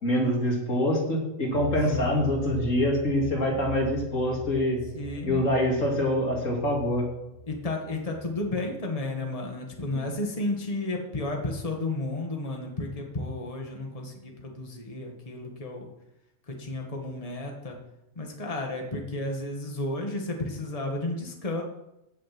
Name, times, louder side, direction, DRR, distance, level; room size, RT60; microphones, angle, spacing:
voice 1, 0.0-4.8 5.2-7.1 9.9-10.1, left 1 dB, 75° left, -1 dB, 3.1 m, -25 dB
sound 1, 1.5-8.5, right 3 dB, 30° right, 1.5 m, -40 dB
voice 2, 1.9-2.3 3.4-3.7 4.9-5.5 7.5-15.9 16.5-17.8 18.2-21.6, left 2 dB, 25° left, 1 dB, 1.8 m, -32 dB
16.0 x 6.5 x 6.0 m, 0.88 s
omnidirectional pair, 1.4 m